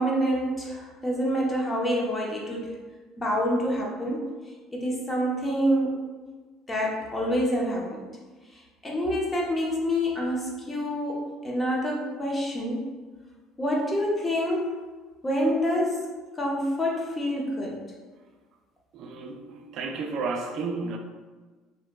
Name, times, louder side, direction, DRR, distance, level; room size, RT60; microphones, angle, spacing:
voice 1, 0.0-2.7 3.2-4.3 4.7-6.0 6.7-8.0 8.5-12.9 13.6-14.7 15.2-16.1 16.4-17.8, equal, 15° left, 0.7 m, -27 dB
voice 2, 18.9-21.0, right 4 dB, 55° right, 0.4 m, -32 dB
2.7 x 2.2 x 3.4 m
cardioid pair, 130°, 0 cm